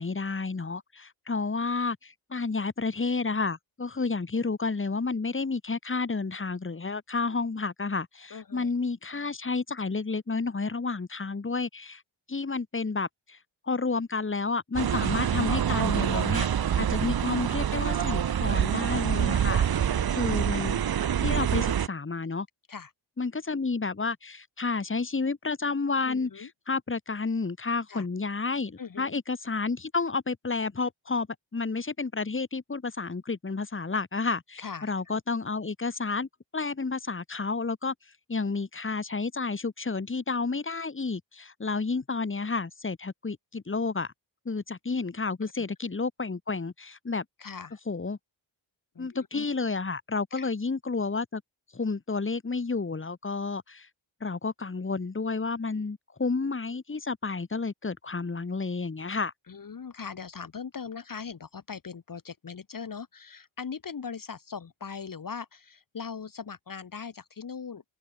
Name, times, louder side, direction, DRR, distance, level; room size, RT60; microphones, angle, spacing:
voice 1, 0.0-12.0 12.3-13.4 13.6-16.5 16.8-20.8 21.2-22.5 23.2-31.3 31.5-37.9 38.3-44.1 44.4-47.2 47.9-48.2 49.0-51.4 51.7-53.9 54.2-59.3, left 4 dB, 25° left, 3.2 m, -31 dB
voice 2, 8.3-8.7 22.7-22.9 26.0-26.5 27.9-28.1 28.8-29.2 34.6-35.1 45.4-45.6 47.4-47.8 48.9-49.5 50.3-50.5 59.5-67.8, left 6 dB, 45° left, 2.7 m, -40 dB
sound 1, 14.8-21.9, right 9 dB, 50° right, 1.0 m, -26 dB
wide cardioid pair, 145°, 46 cm